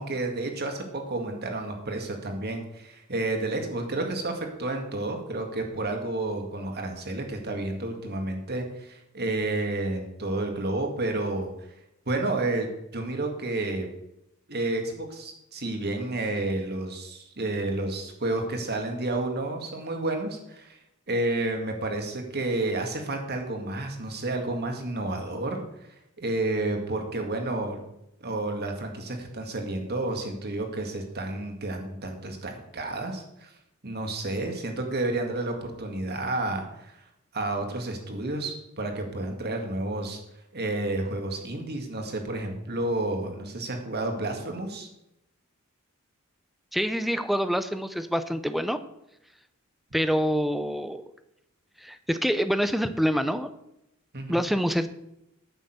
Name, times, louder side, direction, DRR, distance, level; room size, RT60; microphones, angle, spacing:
voice 1, 0.0-11.5 12.1-13.9 14.5-20.8 21.1-25.6 26.2-27.8 28.2-33.5 33.8-36.9 37.3-40.2 40.5-44.9 54.1-54.4, right 2 dB, 50° right, 3 dB, 2.1 m, -30 dB
voice 2, 46.7-48.8 49.9-51.0 51.8-53.5 54.3-54.9, equal, ahead, 11 dB, 0.6 m, -26 dB
9.0 x 6.6 x 7.9 m, 0.84 s
head